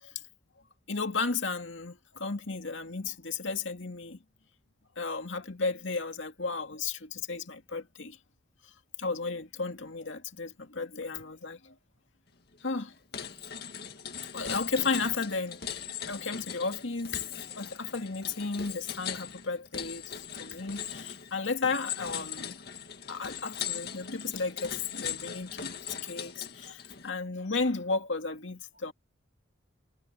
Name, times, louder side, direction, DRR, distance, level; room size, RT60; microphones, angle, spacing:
voice 1, 0.9-4.2 5.0-8.2 8.6-8.7 9.0-11.7 12.6-12.9 14.3-22.6 23.1-28.9, left 4 dB, 70° left, 2.3 m, -34 dB
sound 1, 12.5-12.8 13.1-27.1, left 8 dB, 50° left, 2.0 m, -40 dB
head